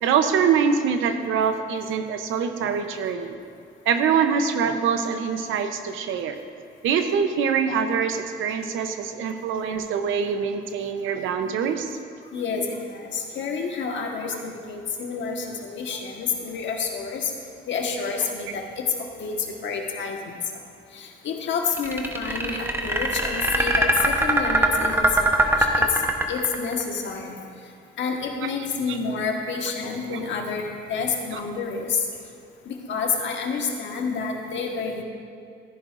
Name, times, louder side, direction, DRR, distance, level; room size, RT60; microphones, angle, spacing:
voice 1, 0.0-3.4 3.8-6.4 6.8-11.9 28.4-28.5 28.9-29.0 30.1-30.3 31.3-31.4, right 6 dB, 85° right, 7 dB, 0.8 m, -24 dB
voice 2, 12.3-17.3 17.7-20.4 20.9-26.0 26.3-27.4 28.0-32.1 32.6-35.0, left 5 dB, 70° left, 1 dB, 1.5 m, -29 dB
sound 1, 21.8-26.8, right 1 dB, 10° right, 0.9 m, -21 dB
14.0 x 10.0 x 2.5 m, 2.3 s
cardioid pair, 90°, 20 cm